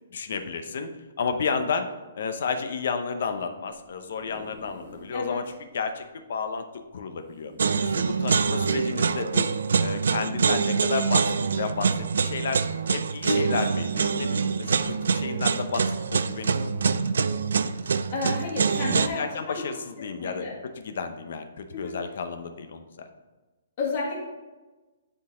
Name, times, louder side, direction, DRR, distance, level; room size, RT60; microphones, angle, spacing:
voice 1, 0.1-0.9 1.2-1.9 2.2-5.4 5.7-6.6 6.9-7.5 7.9-9.5 9.8-12.6 12.9-17.0 18.9-20.5 20.8-23.1, left 5 dB, 50° left, 7 dB, 0.7 m, -32 dB
sound 1, 3.8-5.2 5.7-5.8 6.0-6.1 7.2-8.1 8.8-9.0, right 1 dB, 20° right, 2.0 m, -49 dB
sound 2, 7.6-19.1, right 5 dB, 75° right, 0.3 m, -25 dB
voice 2, 18.1-19.6 20.0-20.5 21.7-22.0 23.8-24.2, left 3 dB, 30° left, -4 dB, 1.6 m, -31 dB
9.8 x 3.9 x 3.7 m, 1.2 s
hypercardioid pair, 180°, 0 cm